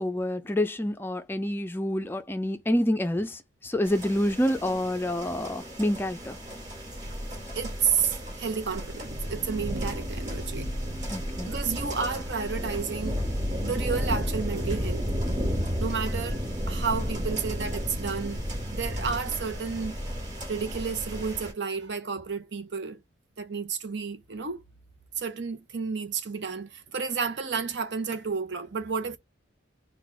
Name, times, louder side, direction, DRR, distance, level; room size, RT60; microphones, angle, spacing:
voice 1, 0.0-6.4 11.1-11.5, left 1 dB, 10° left, 0.4 m, -28 dB
sound 1, 3.8-21.5, equal, 40° right, 2.4 m, -33 dB
voice 2, 7.5-11.1 11.5-13.2 13.6-15.1 15.8-18.4 18.7-20.0 20.5-23.0 23.4-24.6 25.2-29.2, right 5 dB, 65° right, 0.7 m, -31 dB
sound 2, 9.3-18.1, equal, 15° right, 1.0 m, -46 dB
4.2 x 2.3 x 4.2 m
head